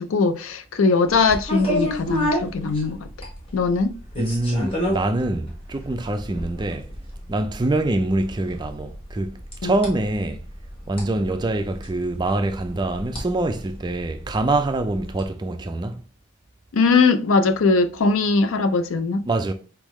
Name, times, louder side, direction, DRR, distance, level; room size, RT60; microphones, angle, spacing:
voice 1, 0.0-3.1 3.5-3.9 9.6-9.7 16.7-19.2, left 4 dB, 70° left, 0.4 m, -20 dB
sound 1, 1.1-15.2, equal, 25° left, 1.2 m, -32 dB
voice 2, 4.2-6.9 7.3-10.4 10.9-16.0 19.2-19.5, right 2 dB, 20° right, 0.4 m, -25 dB
4.5 x 3.5 x 3.1 m
head